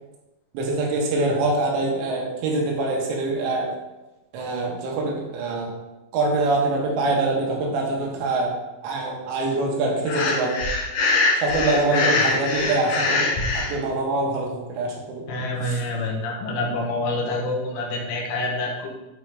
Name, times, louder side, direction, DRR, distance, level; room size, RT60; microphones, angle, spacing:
voice 1, 0.5-3.7 4.3-5.7 6.1-8.5 8.8-10.6 11.4-13.3 13.5-15.2 15.6-15.8, right 2 dB, 70° right, -1 dB, 3.4 m, -24 dB
Breathing, 10.0-13.7, left 3 dB, 70° left, 2.2 m, -23 dB
voice 2, 15.3-18.9, left 2 dB, 90° left, 0 dB, 3.6 m, -27 dB
8.7 x 3.9 x 4.7 m, 1.0 s
omnidirectional pair, 5.5 m